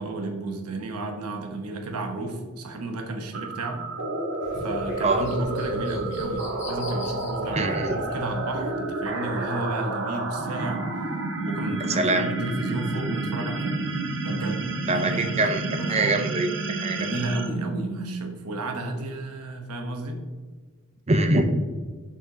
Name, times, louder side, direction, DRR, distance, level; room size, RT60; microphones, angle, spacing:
voice 1, 0.0-3.8 4.6-10.8 11.4-13.9 14.2-16.2 16.9-20.2, right 2 dB, 85° right, 4 dB, 1.0 m, -32 dB
sound 1, 3.3-18.5, right 2 dB, 60° right, 1.0 m, -30 dB
sound 2, 4.4-9.3 9.8-9.9, left 1 dB, 55° left, 1.9 m, -41 dB
voice 2, 7.5-8.0 11.9-12.3 14.9-17.1 21.1-21.4, right 2 dB, 30° right, 7 dB, 0.6 m, -24 dB
6.8 x 5.6 x 2.8 m, 1.4 s
head